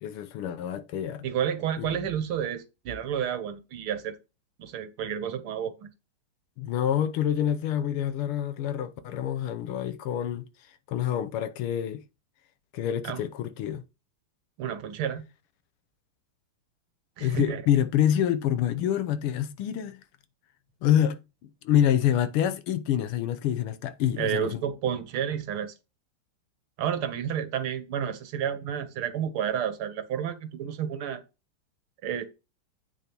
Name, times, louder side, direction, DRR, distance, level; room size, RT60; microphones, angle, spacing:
voice 1, 0.0-1.3 1.8-2.1 6.6-10.4 10.9-12.0 12.7-13.8 17.2-20.0 20.8-21.2 21.6-24.6, left 10 dB, 85° left, 1.7 m, -27 dB
voice 2, 1.2-4.2 4.6-5.9 13.0-13.2 14.6-15.2 17.2-17.6 24.2-25.7 26.8-31.2 32.0-32.2, right 9 dB, 75° right, 1.9 m, -30 dB
8.5 x 6.6 x 3.0 m
omnidirectional pair, 2.4 m